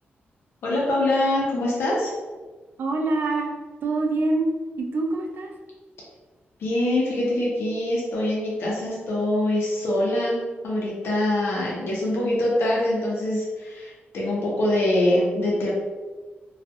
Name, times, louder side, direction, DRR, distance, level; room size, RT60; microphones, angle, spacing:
voice 1, 0.6-2.1 6.6-10.4 10.6-15.7, left 1 dB, 80° left, -5 dB, 0.7 m, -24 dB
voice 2, 2.8-3.5 3.8-4.5 4.8-5.5, right 2 dB, 55° right, 2 dB, 0.4 m, -25 dB
2.3 x 2.3 x 2.7 m, 1.3 s
wide cardioid pair, 150°, 4 cm